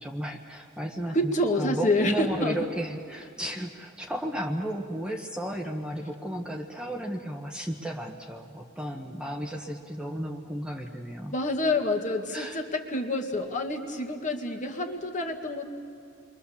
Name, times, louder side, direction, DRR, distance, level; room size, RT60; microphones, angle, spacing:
voice 1, 0.0-11.3 12.3-12.6, equal, 5° right, 2 dB, 1.2 m, -34 dB
voice 2, 1.1-2.6 11.3-15.7, left 1 dB, 35° left, 3 dB, 2.0 m, -28 dB
30.0 x 23.5 x 7.1 m, 2.6 s
head